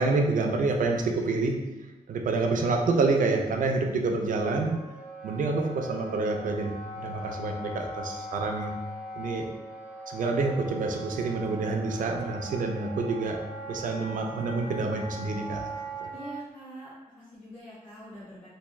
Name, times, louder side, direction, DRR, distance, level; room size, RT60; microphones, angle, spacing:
voice 1, 0.0-1.6 2.1-4.8 5.2-8.7 9.1-9.5 10.1-13.4 13.7-15.7 16.0-16.1, right 3 dB, 65° right, 2 dB, 0.5 m, -27 dB
Wind instrument woodwind instrument, 4.3-16.4, right 2 dB, 10° right, 0.5 m, -40 dB
voice 2, 16.1-18.5, equal, 60° left, -10 dB, 1.3 m, -44 dB
3.5 x 2.6 x 3.1 m, 1.1 s
wide cardioid pair, 180°, 14 cm